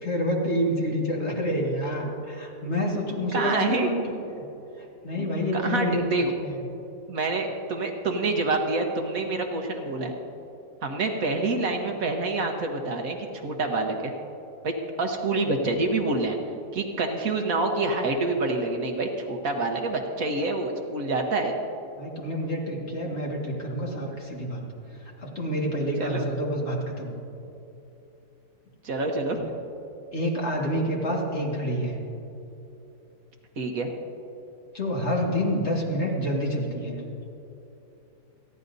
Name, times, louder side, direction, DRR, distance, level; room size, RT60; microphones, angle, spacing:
voice 1, 0.0-4.5 5.0-6.6 22.0-24.6 25.2-27.1 30.1-32.0 34.7-37.0, equal, 45° left, -2 dB, 2.1 m, -28 dB
voice 2, 3.3-3.9 5.5-6.3 7.1-10.1 10.8-14.1 14.6-14.7 15.0-16.4 16.7-21.5 26.0-26.2 28.8-29.4 33.6-33.9, right 3 dB, 60° right, 3 dB, 1.4 m, -27 dB
28.5 x 11.0 x 2.7 m, 2.9 s
omnidirectional pair, 1.7 m